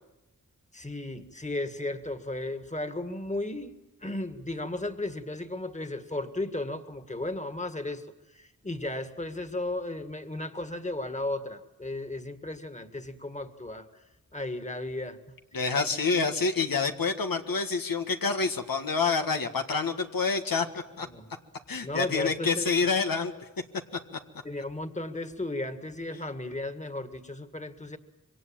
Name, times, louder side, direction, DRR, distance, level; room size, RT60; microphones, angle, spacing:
voice 1, 0.7-8.0 8.3-14.0 14.3-15.4 21.0-21.3 21.8-22.9 24.4-28.0, left 2 dB, 20° left, 9 dB, 2.0 m, -35 dB
voice 2, 15.5-21.1 21.7-23.3, left 4 dB, 85° left, 5 dB, 1.8 m, -27 dB
26.0 x 23.5 x 9.0 m, 0.95 s
wide cardioid pair, 75°, 34 cm